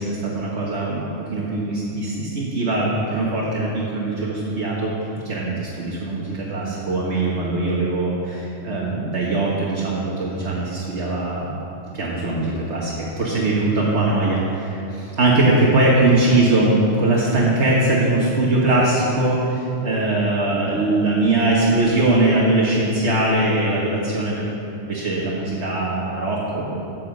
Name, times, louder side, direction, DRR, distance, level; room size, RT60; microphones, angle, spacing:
voice 1, 0.0-4.9 5.2-11.5 11.9-24.4 24.8-26.9, right 2 dB, 65° right, -6 dB, 1.7 m, -21 dB
15.0 x 7.2 x 5.2 m, 2.9 s
omnidirectional pair, 1.3 m